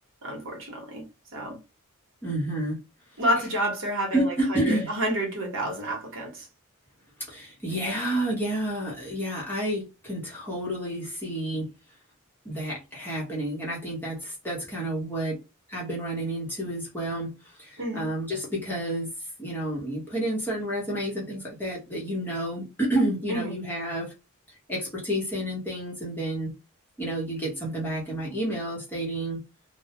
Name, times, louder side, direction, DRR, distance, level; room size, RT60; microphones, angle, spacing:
voice 1, 0.2-1.0 1.3-1.6 3.2-6.5 17.8-18.1 23.3-23.5, equal, 60° right, 0.9 m, -29 dB
voice 2, 2.2-2.8 4.1-4.9 7.2-11.7 12.4-15.4 15.7-19.1 19.4-24.1 24.7-26.5 27.0-29.4, right 1 dB, 10° left, 0.8 m, -30 dB
2.1 x 2.1 x 2.8 m
head